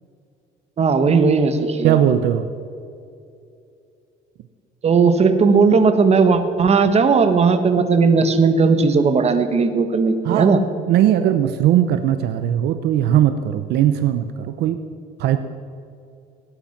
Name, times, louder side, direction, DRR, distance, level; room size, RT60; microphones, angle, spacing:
voice 1, 0.8-2.0 4.8-10.6, right 4 dB, 40° right, 9 dB, 1.5 m, -16 dB
voice 2, 1.8-2.5 10.2-10.6 10.8-14.8 15.2-15.4, right 11 dB, 75° right, 10 dB, 0.8 m, -18 dB
18.5 x 10.0 x 5.9 m, 2.6 s
cardioid pair, 110°, 17 cm